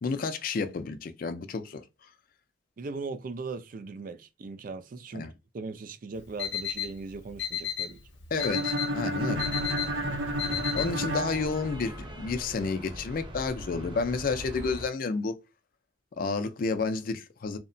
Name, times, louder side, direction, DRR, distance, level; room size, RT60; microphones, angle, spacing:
voice 1, 0.0-1.8 5.1-5.3 8.3-9.5 10.7-15.4 16.2-17.6, left 4 dB, 50° left, 0.4 m, -31 dB
voice 2, 2.8-5.3 5.5-8.0, right 3 dB, 45° right, 0.3 m, -39 dB
Alarm, 6.1-11.2, left 9 dB, 70° left, 0.7 m, -34 dB
sound 1, 8.4-12.3, right 1 dB, 90° right, 0.6 m, -32 dB
sound 2, 9.3-14.9, equal, 25° right, 0.7 m, -41 dB
2.7 x 2.1 x 2.6 m
head